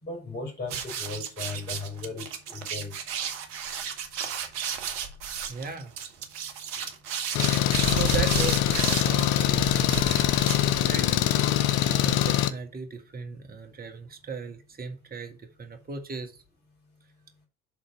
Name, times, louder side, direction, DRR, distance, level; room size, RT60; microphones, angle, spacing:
voice 1, 0.0-3.0, left 3 dB, 25° left, 4.1 m, -36 dB
sound 1, 0.7-11.1, right 7 dB, 65° right, 1.3 m, -33 dB
voice 2, 5.5-5.9 7.9-10.2 10.6-11.3 11.8-16.4, right 5 dB, 25° right, 1.6 m, -37 dB
Engine, 7.4-12.5, left 11 dB, 60° left, 0.8 m, -23 dB
7.2 x 3.7 x 5.5 m
figure-of-eight pair, 65°, 38 cm